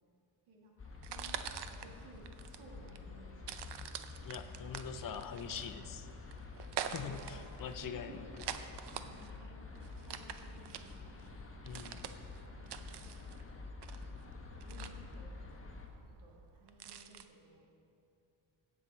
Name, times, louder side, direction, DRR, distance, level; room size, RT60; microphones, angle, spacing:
voice 1, 0.5-3.5 4.2-4.9 6.8-7.4 7.8-8.4 8.7-11.2 12.6-13.3 14.0-15.3 15.6-17.7, right 2 dB, 85° right, -2 dB, 2.1 m, -58 dB
sound 1, 0.8-15.9, left 3 dB, 25° left, 1.3 m, -49 dB
sound 2, 0.9-17.2, right 9 dB, 55° right, 0.7 m, -46 dB
voice 2, 4.2-6.1 6.9-8.2 11.6-12.0, left 7 dB, 40° left, 9 dB, 0.7 m, -43 dB
16.5 x 6.2 x 4.1 m, 2.5 s
cardioid pair, 95°, 49 cm